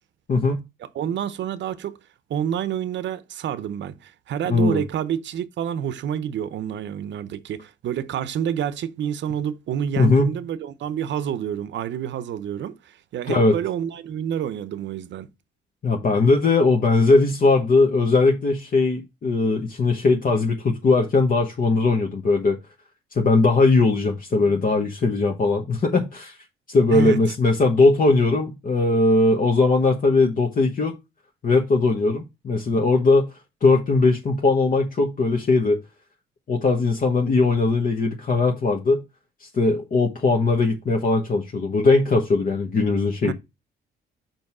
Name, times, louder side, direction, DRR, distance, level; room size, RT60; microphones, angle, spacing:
voice 1, 0.3-0.6 4.5-4.8 10.0-10.3 13.3-13.5 15.8-22.6 23.1-26.4 26.7-31.0 31.4-33.3 33.6-35.8 36.5-39.0 39.4-43.3, left 3 dB, 45° left, 1.2 m, -19 dB
voice 2, 0.9-2.0 2.3-15.3 26.9-27.2 43.2-43.3, right 9 dB, 65° right, 0.7 m, -28 dB
5.3 x 4.5 x 5.9 m
cardioid pair, 90°, 20 cm